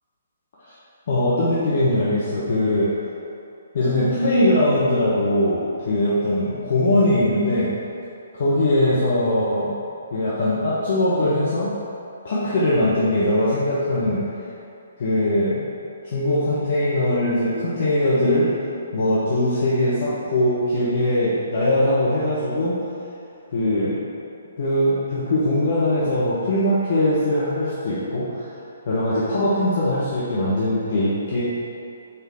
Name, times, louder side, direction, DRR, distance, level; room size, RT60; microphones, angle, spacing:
voice 1, 1.1-2.9 3.7-7.7 8.3-9.8 10.1-11.7 12.2-14.2 15.0-15.7 16.0-18.5 18.9-22.8 23.5-24.0 24.6-28.5 28.8-31.4, left 1 dB, 50° left, -9 dB, 1.4 m, -21 dB
6.2 x 5.3 x 4.8 m, 2.7 s
figure-of-eight pair, 130°, 0 cm